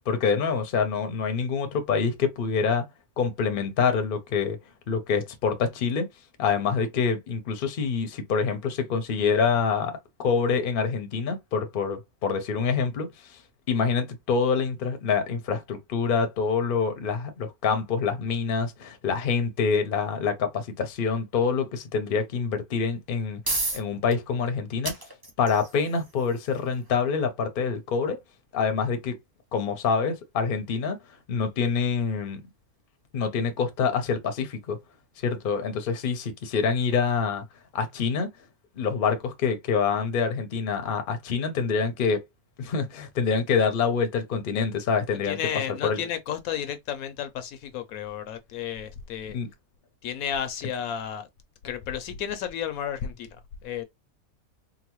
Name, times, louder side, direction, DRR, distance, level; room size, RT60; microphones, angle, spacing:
voice 1, 0.1-2.8 3.2-4.6 4.9-6.1 6.4-13.4 13.7-23.4 23.7-24.9 25.4-28.2 28.5-29.2 29.5-31.0 31.3-32.4 33.1-34.8 35.2-37.4 37.7-38.3 38.8-42.2 42.6-45.4 45.8-46.0 49.3-49.5, left 5 dB, 50° left, 0.7 m, -26 dB
sound 1, 23.0-37.8, right 2 dB, 20° right, 0.6 m, -40 dB
voice 2, 45.2-49.4 50.0-51.3 51.6-53.8, left 9 dB, 75° left, 1.0 m, -32 dB
3.9 x 2.1 x 3.0 m
omnidirectional pair, 1.6 m